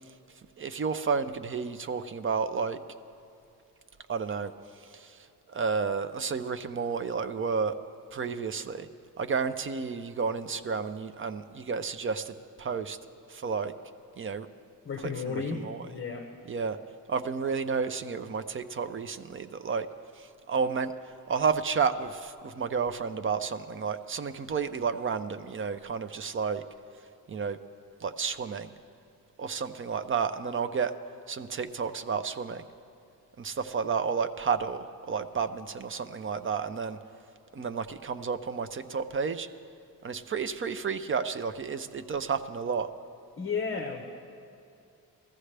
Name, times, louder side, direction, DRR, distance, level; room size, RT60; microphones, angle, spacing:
voice 1, 0.6-2.8 4.1-4.5 4.9-5.2 5.5-7.7 8.1-8.9 9.2-13.0 13.3-13.7 14.2-14.5 15.0-15.8 16.5-16.8 17.1-19.9 20.2-20.9 21.3-26.6 27.3-27.6 28.0-28.7 29.4-30.9 31.3-32.6 33.4-37.0 37.5-39.5 40.0-42.9, right 5 dB, 35° right, 10 dB, 0.5 m, -31 dB
voice 2, 14.8-16.3 43.4-44.0, left 5 dB, 35° left, 4 dB, 0.9 m, -33 dB
21.0 x 14.5 x 3.3 m, 2.6 s
wide cardioid pair, 155°, 38 cm